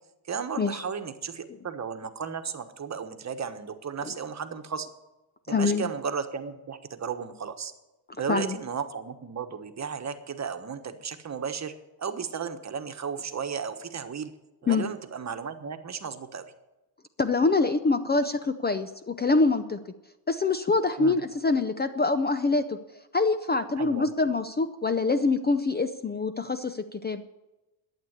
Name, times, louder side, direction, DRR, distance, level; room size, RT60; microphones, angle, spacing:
voice 1, 0.3-4.9 5.5-7.7 8.2-11.7 12.0-14.3 14.6-16.4 21.0-21.2 23.8-24.1, right 6 dB, 35° right, 8 dB, 1.3 m, -34 dB
voice 2, 5.5-5.9 8.3-8.6 14.7-14.8 17.2-19.8 20.3-22.8 23.1-27.2, left 3 dB, 20° left, 10 dB, 0.6 m, -25 dB
12.0 x 8.6 x 8.1 m, 1.0 s
cardioid pair, 95°, 49 cm